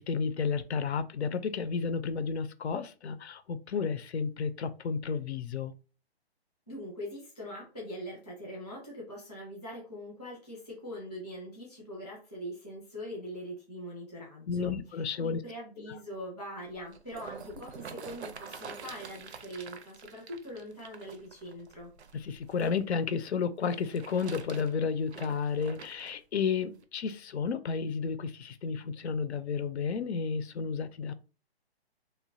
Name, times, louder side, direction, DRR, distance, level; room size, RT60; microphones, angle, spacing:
voice 1, 0.0-5.7 14.5-15.4 15.9-16.0 22.1-31.1, left 5 dB, 85° left, 0.5 m, -32 dB
voice 2, 6.7-14.7 15.2-21.9, equal, ahead, 0.5 m, -42 dB
sound 1, 16.7-22.8 23.6-26.2 26.8-26.9, right 6 dB, 85° right, 0.6 m, -47 dB
3.0 x 2.1 x 2.6 m
hypercardioid pair, 170°, 32 cm